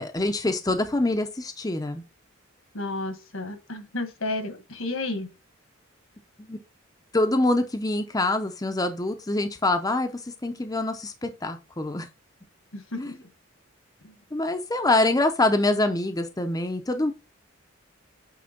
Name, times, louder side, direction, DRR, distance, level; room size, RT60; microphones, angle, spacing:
voice 1, 0.0-2.0 6.4-6.6 7.1-12.1 13.0-13.1 14.3-17.1, left 2 dB, 20° left, 0.6 m, -25 dB
voice 2, 2.7-5.3 12.7-13.3 14.0-14.1, left 2 dB, 80° left, 1.5 m, -32 dB
8.7 x 3.3 x 5.2 m
head